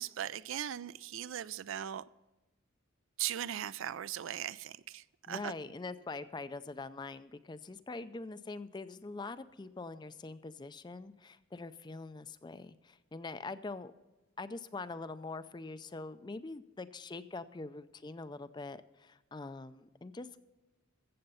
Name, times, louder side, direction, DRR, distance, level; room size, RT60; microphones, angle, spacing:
voice 1, 0.0-2.1 3.2-5.5, right 11 dB, 65° right, 0.4 m, -39 dB
voice 2, 5.3-13.9 14.4-20.3, left 3 dB, 20° left, 0.4 m, -44 dB
14.5 x 7.8 x 5.5 m
head